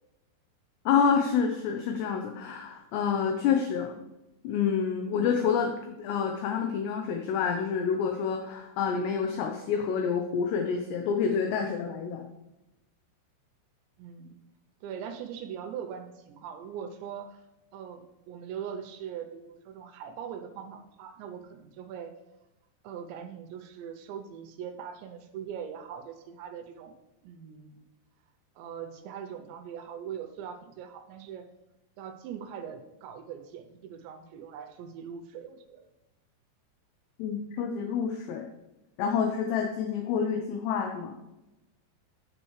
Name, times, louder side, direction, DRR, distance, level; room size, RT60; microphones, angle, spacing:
voice 1, 0.9-4.0 4.4-12.3 37.2-38.5 39.0-41.2, left 6 dB, 80° left, 4 dB, 2.6 m, -28 dB
voice 2, 14.0-14.4 14.8-17.4 17.7-22.1 22.8-26.9 27.2-27.9 28.6-31.4 32.0-35.8, right 8 dB, 80° right, 7 dB, 2.8 m, -41 dB
8.8 x 8.5 x 3.1 m, 0.96 s
omnidirectional pair, 5.4 m